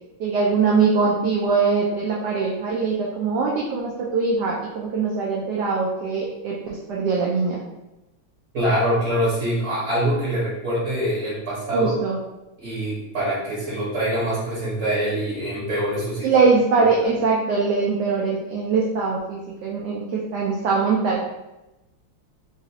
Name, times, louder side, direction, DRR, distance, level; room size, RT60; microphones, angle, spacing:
voice 1, 0.2-7.6 11.7-12.2 16.2-21.2, right 4 dB, 90° right, -3 dB, 0.9 m, -22 dB
voice 2, 8.5-11.9 12.6-16.3 16.7-17.1, equal, 50° right, -8 dB, 0.9 m, -24 dB
3.9 x 2.4 x 2.7 m, 0.97 s
omnidirectional pair, 2.4 m